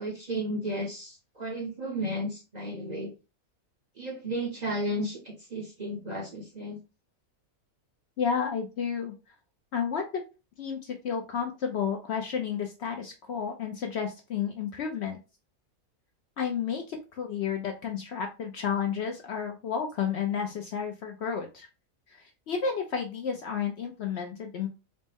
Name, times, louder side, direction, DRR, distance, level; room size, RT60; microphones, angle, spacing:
voice 1, 0.0-3.1 4.0-6.8, right 1 dB, 40° right, -1 dB, 0.7 m, -33 dB
voice 2, 8.2-9.1 9.7-10.2 10.6-15.2 16.4-21.7 22.1-24.7, left 7 dB, 65° left, 3 dB, 0.7 m, -31 dB
4.1 x 2.1 x 3.4 m, 0.30 s
omnidirectional pair, 1.5 m